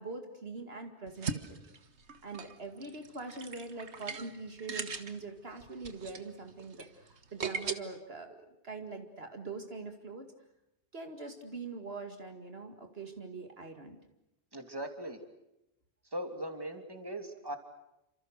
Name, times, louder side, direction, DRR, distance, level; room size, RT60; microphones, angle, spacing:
voice 1, 0.0-1.6 2.2-10.3 10.9-14.0, right 3 dB, 65° right, 5 dB, 2.5 m, -43 dB
sound 1, 1.1-7.7, right 5 dB, 85° right, 1.8 m, -40 dB
voice 2, 14.5-15.2 16.1-17.6, right 1 dB, 20° right, 5 dB, 2.9 m, -39 dB
29.0 x 27.0 x 6.6 m, 0.89 s
omnidirectional pair, 1.1 m